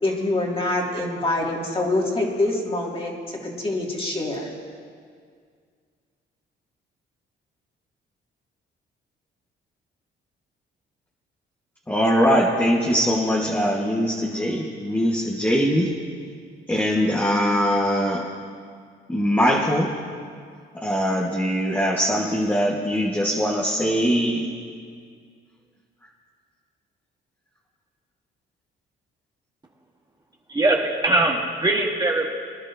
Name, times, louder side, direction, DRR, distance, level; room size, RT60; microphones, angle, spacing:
voice 1, 0.0-4.5, left 2 dB, 25° left, -1 dB, 2.3 m, -25 dB
voice 2, 11.9-15.9 16.7-18.3 19.1-20.0 20.7-24.5, equal, 10° left, -2 dB, 1.3 m, -22 dB
voice 3, 30.5-32.3, right 2 dB, 20° right, 0 dB, 1.3 m, -21 dB
22.5 x 11.0 x 2.7 m, 2.1 s
cardioid pair, 90°, 20 cm